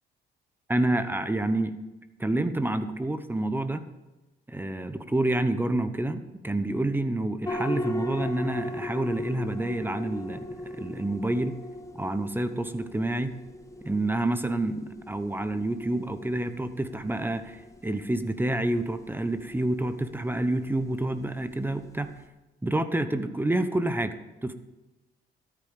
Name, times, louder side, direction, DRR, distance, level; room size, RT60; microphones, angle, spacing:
voice 1, 0.7-1.7 2.2-3.8 4.5-10.5 10.7-11.5 12.0-13.3 13.8-22.1 22.6-24.5, right 1 dB, 10° right, 10 dB, 0.9 m, -28 dB
sound 1, 7.4-22.3, left 1 dB, 15° left, 1.2 m, -39 dB
13.5 x 9.7 x 5.1 m, 1.1 s
cardioid pair, 90°, 20 cm